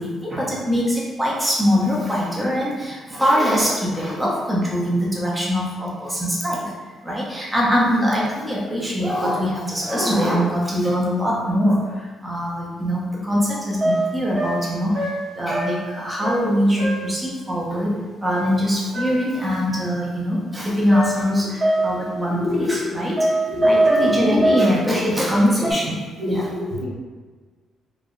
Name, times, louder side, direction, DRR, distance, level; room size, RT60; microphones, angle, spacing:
voice 1, 0.0-6.7 7.0-18.0 18.2-23.3 23.6-26.5, equal, 15° right, -5 dB, 1.0 m, -22 dB
sound 1, 13.4-13.5 13.8-15.9 16.2-16.5 16.8-17.2 18.2-19.3 20.9-22.1 23.2-24.8 25.6-25.7, right 1 dB, 40° right, 1.4 m, -22 dB
voice 2, 22.3-22.9 23.5-24.6 26.2-26.8, left 1 dB, 90° right, -6 dB, 1.1 m, -26 dB
3.1 x 2.6 x 3.8 m, 1.4 s
cardioid pair, 90°, 0 cm